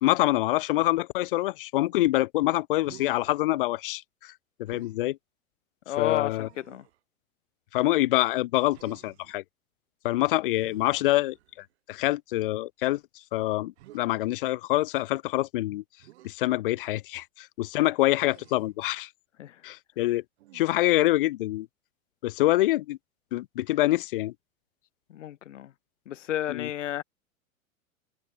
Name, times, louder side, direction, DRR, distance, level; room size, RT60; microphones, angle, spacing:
voice 1, 0.0-4.3 4.6-5.2 6.0-6.5 7.7-9.4 10.0-13.0 13.3-15.8 16.2-19.1 19.6-20.2 20.5-21.7 22.2-23.0 23.3-24.3 26.5-26.7, left 17 dB, 40° left, 0.5 m, -26 dB
Human voice, 2.8-3.4 4.6-5.0 6.3-7.0 8.7-9.4 10.5-11.7 13.8-14.0 16.0-16.3 18.3-18.8 20.4-20.9, right 16 dB, 50° right, 3.4 m, -52 dB
voice 2, 5.9-6.8 19.4-19.5 25.1-25.7 26.1-27.0, left 12 dB, 60° left, 1.2 m, -32 dB
figure-of-eight pair, 95°, 42 cm